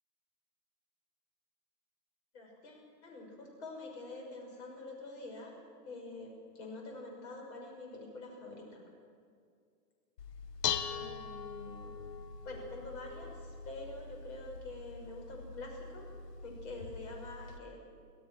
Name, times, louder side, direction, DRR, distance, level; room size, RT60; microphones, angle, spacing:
voice 1, 2.3-5.6 5.8-6.3 6.5-8.8 10.9-12.0 12.4-16.1 16.4-17.9, left 2 dB, 45° left, 1 dB, 6.4 m, -46 dB
Dishes pots and pans, 10.2-17.6, left 7 dB, 80° left, 1.4 m, -42 dB
25.0 x 16.0 x 6.5 m, 2.2 s
hypercardioid pair, 160°, 48 cm